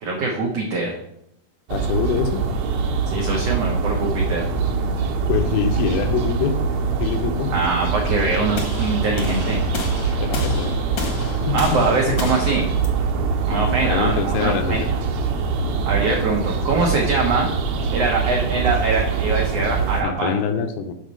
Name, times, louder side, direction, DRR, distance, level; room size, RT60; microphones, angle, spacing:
voice 1, 0.0-1.0 3.1-4.4 7.5-9.6 11.5-12.7 13.4-14.8 15.8-17.5 17.9-20.3, right 3 dB, 85° right, 0 dB, 1.4 m, -23 dB
voice 2, 1.7-2.4 5.3-6.6 7.0-7.5 10.2-10.8 11.5-12.2 13.5-14.9 20.0-20.9, left 6 dB, 80° left, 7 dB, 2.5 m, -24 dB
sound 1, 1.7-20.0, right 4 dB, 65° right, 2.0 m, -23 dB
sound 2, 8.5-14.6, left 2 dB, 60° left, 1.4 m, -32 dB
6.6 x 4.0 x 6.3 m, 0.78 s
omnidirectional pair, 4.3 m